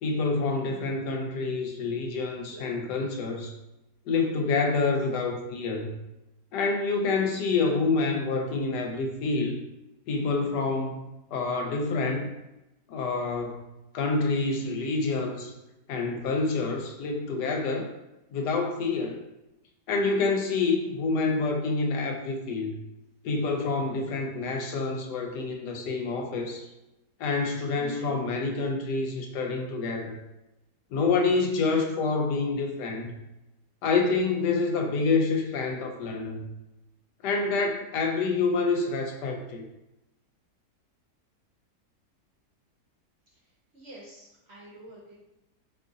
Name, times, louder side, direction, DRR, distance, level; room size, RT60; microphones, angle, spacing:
voice 1, 0.0-3.5 4.1-5.9 6.5-9.6 10.1-12.3 12.9-13.7 13.9-15.5 15.9-17.9 18.3-19.2 19.9-22.8 23.2-26.7 27.2-30.2 30.9-33.1 33.8-36.4 37.2-39.6, left 4 dB, 80° left, 3 dB, 1.2 m, -27 dB
voice 2, 43.7-45.1, right 1 dB, 50° right, -5 dB, 0.9 m, -48 dB
2.8 x 2.4 x 3.8 m, 0.95 s
omnidirectional pair, 1.8 m